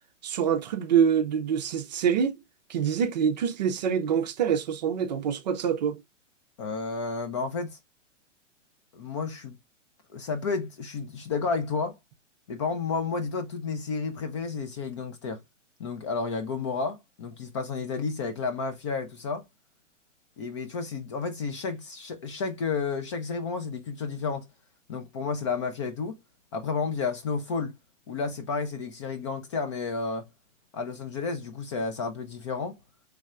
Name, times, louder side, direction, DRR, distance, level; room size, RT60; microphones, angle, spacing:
voice 1, 0.2-2.4 2.7-6.0, right 7 dB, 35° right, 0.6 m, -25 dB
voice 2, 6.6-7.8 8.9-9.6 10.1-12.0 12.5-15.4 15.8-19.4 20.4-24.5 24.9-26.2 26.5-27.7 28.1-30.3 30.7-32.8, left 4 dB, 25° left, 0.5 m, -31 dB
5.1 x 3.3 x 2.4 m
figure-of-eight pair, 120°, 37 cm